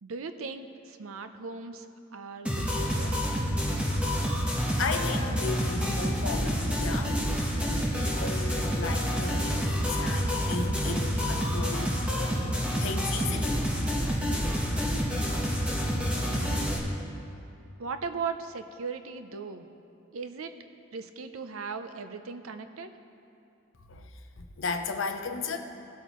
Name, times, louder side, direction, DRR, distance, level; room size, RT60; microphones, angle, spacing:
voice 1, 0.0-1.9 2.1-3.1 17.8-19.7 20.1-20.5 20.9-22.9, right 5 dB, 80° right, 9 dB, 0.6 m, -38 dB
sound 1, 2.5-16.8, equal, 5° right, 1.2 m, -28 dB
voice 2, 4.8-7.2 8.0-12.2 12.8-13.6 23.9-24.1 24.4-25.6, left 4 dB, 65° left, 6 dB, 0.7 m, -35 dB
17.5 x 8.2 x 3.1 m, 2.6 s
head